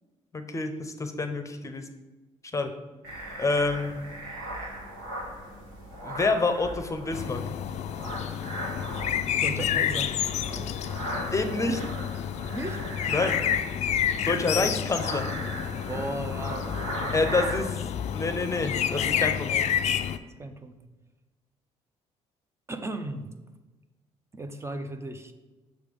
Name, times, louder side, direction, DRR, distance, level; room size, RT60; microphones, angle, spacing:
voice 1, 0.3-1.9 2.5-2.7 3.4-4.0 6.0-7.4 11.3-11.8 13.1-13.4 14.2-15.3 17.1-17.8 18.1-19.5, left 3 dB, 25° left, 7 dB, 0.7 m, -27 dB
sound 1, 3.0-17.6, right 1 dB, 85° right, 1.8 m, -38 dB
sound 2, 7.1-20.2, left 9 dB, 60° left, 0.4 m, -29 dB
voice 2, 8.9-10.2 12.5-12.8 14.5-14.7 15.9-17.5 18.9-19.7 20.4-20.8 22.7-23.3 24.3-25.3, right 2 dB, 20° right, 7 dB, 0.6 m, -37 dB
6.5 x 3.3 x 5.3 m, 1.2 s
supercardioid pair, 80°, 13 cm